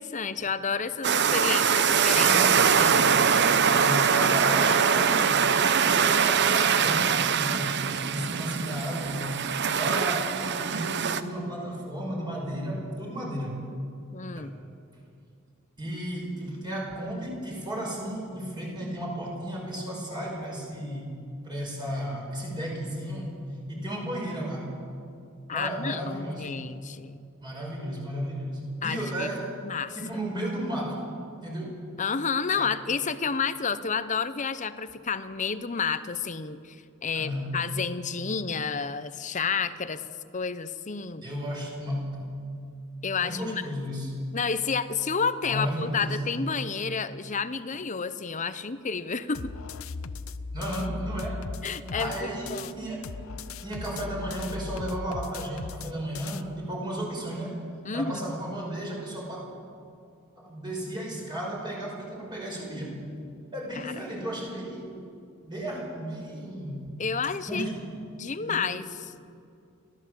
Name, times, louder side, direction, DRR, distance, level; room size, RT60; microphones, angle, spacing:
voice 1, 0.0-2.3 2.7-3.1 14.1-14.5 25.5-27.2 28.8-29.3 29.6-29.9 32.0-40.0 40.3-41.2 43.0-43.6 44.3-49.5 51.6-52.8 57.8-58.3 63.7-63.9 67.0-67.7 68.2-69.3, left 5 dB, 35° left, 13 dB, 0.8 m, -30 dB
sound 1, 1.0-11.2, right 7 dB, 55° right, 0.8 m, -23 dB
voice 2, 2.1-2.7 3.8-7.8 8.1-9.3 9.7-13.5 14.3-14.5 15.8-21.2 21.4-23.4 23.7-24.7 25.5-26.6 27.4-29.5 29.9-31.1 31.4-31.8 32.5-32.7 37.1-37.5 41.2-42.2 43.2-44.1 45.4-46.2 50.5-51.5 51.9-53.1 53.6-57.6 57.9-59.4 60.4-63.0 63.5-65.0 65.4-66.8 67.5-67.9 68.4-68.7, right 1 dB, 20° right, -3 dB, 5.4 m, -33 dB
sound 2, 49.3-52.7 53.0-56.4, left 4 dB, 75° left, 0.7 m, -38 dB
30.0 x 13.0 x 7.7 m, 2.4 s
head